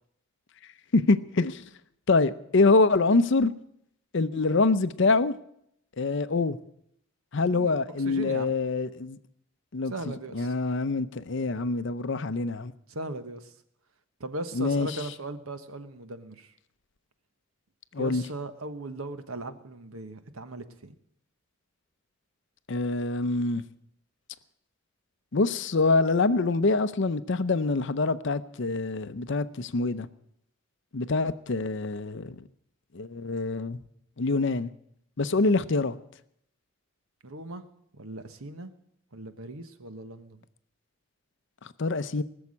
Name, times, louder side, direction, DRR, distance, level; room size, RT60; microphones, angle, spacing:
voice 1, 0.9-1.6 2.1-3.5 4.1-5.3 6.0-6.6 7.3-9.2 9.7-9.9 10.3-12.7 14.5-14.9 17.9-18.2 22.7-23.6 25.3-30.1 30.9-32.3 32.9-33.8 34.2-34.7 35.2-36.0 41.8-42.2, left 3 dB, 60° left, 0.6 m, -25 dB
voice 2, 8.0-8.6 9.9-10.5 12.9-13.5 14.2-16.5 17.9-20.9 37.2-37.6 37.9-38.7 39.1-40.5, right 2 dB, 85° right, 1.3 m, -38 dB
19.5 x 7.1 x 9.7 m
head